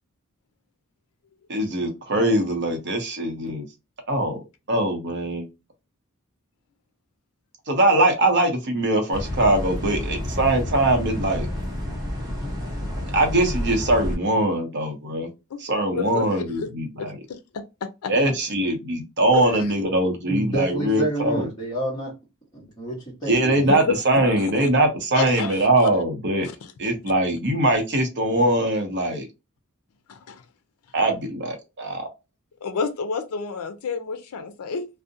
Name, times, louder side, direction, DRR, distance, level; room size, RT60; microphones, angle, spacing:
voice 1, 1.5-3.6 4.1-4.4 4.7-5.5 7.7-11.5 13.1-15.3 15.6-17.1 18.1-21.5 23.3-26.5 26.8-29.3 30.9-32.1, right 1 dB, 55° right, 0.7 m, -22 dB
sound 1, 9.1-14.1, left 1 dB, 15° right, 0.8 m, -29 dB
voice 2, 15.9-16.7 17.3-17.6 18.0-18.1 19.3-19.7 23.7-24.5 25.1-25.7 26.6-26.7 30.1-30.4 32.6-34.9, left 5 dB, 80° left, 0.4 m, -29 dB
voice 3, 20.3-22.1 22.5-23.7, right 1 dB, 20° left, 1.1 m, -28 dB
2.6 x 2.0 x 2.6 m
head